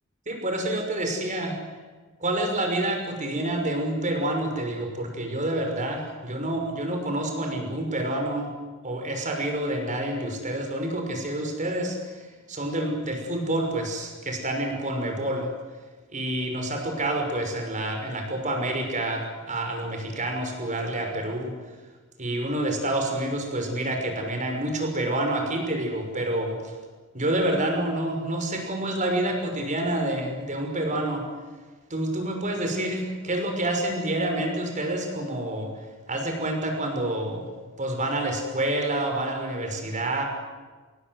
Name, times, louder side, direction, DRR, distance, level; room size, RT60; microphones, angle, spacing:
voice 1, 0.3-1.6 2.2-8.5 8.8-15.5 16.1-21.5 22.2-26.7 27.1-31.3 31.9-35.7 36.1-37.5 37.8-40.2, right 1 dB, 35° right, 3 dB, 6.2 m, -28 dB
26.5 x 23.0 x 8.1 m, 1.4 s
head